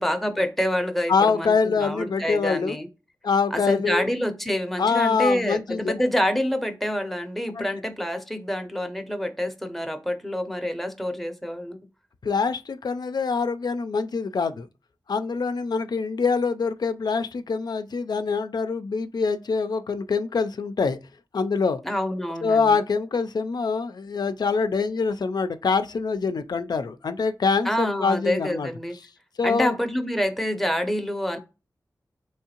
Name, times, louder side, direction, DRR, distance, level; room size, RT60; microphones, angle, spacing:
voice 1, 0.0-2.9 3.5-11.8 21.8-22.8 27.6-29.0 29.4-31.4, equal, 5° left, 0.6 m, -27 dB
voice 2, 1.1-2.8 3.2-4.1 4.8-5.9 7.5-7.7 12.2-14.7 15.1-21.0 21.3-21.8 22.4-28.7 29.4-29.8, left 5 dB, 70° left, 0.4 m, -24 dB
3.5 x 3.1 x 2.8 m
cardioid pair, 50°, 7 cm